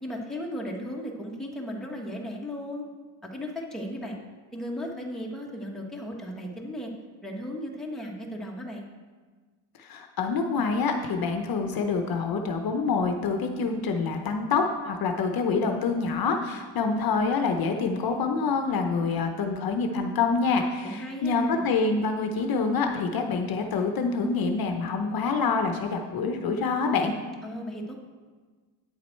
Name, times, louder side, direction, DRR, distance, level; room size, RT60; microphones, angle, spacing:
voice 1, 0.0-2.8 3.2-4.2 4.5-6.9 7.2-8.9 20.8-21.7 27.4-28.0, equal, ahead, -2 dB, 1.1 m, -36 dB
voice 2, 9.8-27.1, left 4 dB, 50° left, 5 dB, 0.7 m, -26 dB
9.0 x 7.2 x 4.4 m, 1.4 s
cardioid pair, 145°, 45 cm